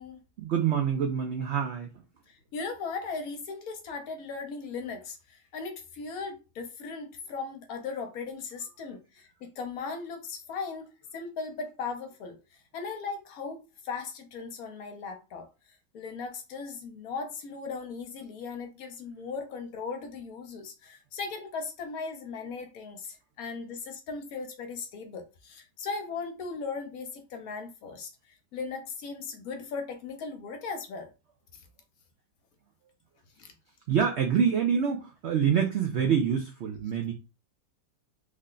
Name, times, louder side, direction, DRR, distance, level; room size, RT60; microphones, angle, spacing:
voice 1, 0.4-2.0 33.9-37.1, right 7 dB, 80° right, 0.6 m, -26 dB
voice 2, 2.3-10.9 11.1-12.4 12.7-15.5 15.9-28.1 28.5-31.1 33.4-33.5, left 4 dB, 65° left, 1.1 m, -38 dB
3.4 x 2.2 x 3.7 m
omnidirectional pair, 1.7 m